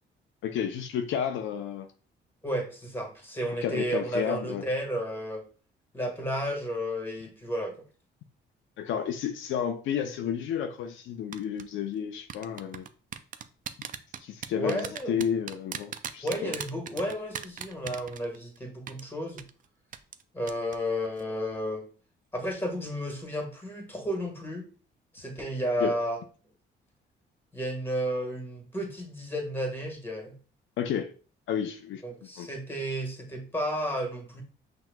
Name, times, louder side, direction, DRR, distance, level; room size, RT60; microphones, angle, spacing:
voice 1, 0.4-1.9 3.6-4.6 8.8-12.9 14.2-16.5 25.8-25.9 30.8-31.1 31.5-32.0 32.4-32.5, left 8 dB, 75° left, 0.5 m, -31 dB
voice 2, 2.4-5.4 5.9-7.8 14.5-15.2 16.2-19.4 20.3-21.9 22.3-24.7 25.1-26.2 27.5-30.4 32.0-34.4, equal, 10° left, 1.5 m, -32 dB
sound 1, 11.3-11.6 12.3-18.6 18.9-19.0 19.4-19.5 19.9-20.2 20.5-20.8 21.1-21.2, right 8 dB, 45° right, 0.4 m, -37 dB
5.8 x 2.9 x 2.2 m
cardioid pair, 90°, 20 cm